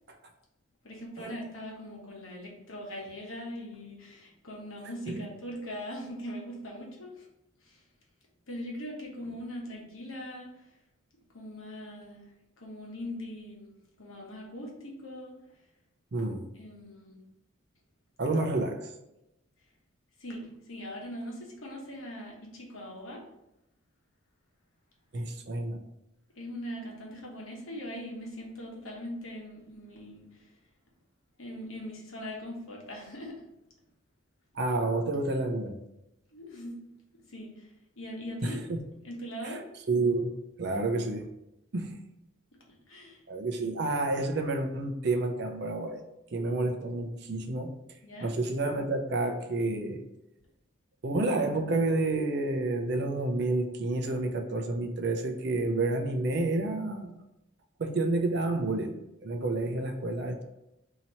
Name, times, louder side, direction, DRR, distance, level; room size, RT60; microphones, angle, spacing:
voice 1, 0.8-7.3 7.6-7.8 8.5-10.8 11.3-12.3 12.6-13.7 14.0-15.3 16.5-17.2 20.2-23.2 26.3-30.6 31.4-33.4 36.3-36.8 37.3-38.6 39.0-39.6 42.7-43.2 48.0-48.3, equal, 85° left, -1 dB, 1.1 m, -41 dB
voice 2, 16.1-16.5 18.2-18.9 25.1-25.8 34.6-35.8 38.4-38.5 39.4-39.6 39.9-41.3 41.7-42.0 43.3-46.0 46.3-47.8 48.2-50.0 51.0-57.2 57.8-60.4, right 2 dB, 55° right, 5 dB, 0.5 m, -29 dB
2.9 x 2.8 x 4.2 m, 0.88 s
head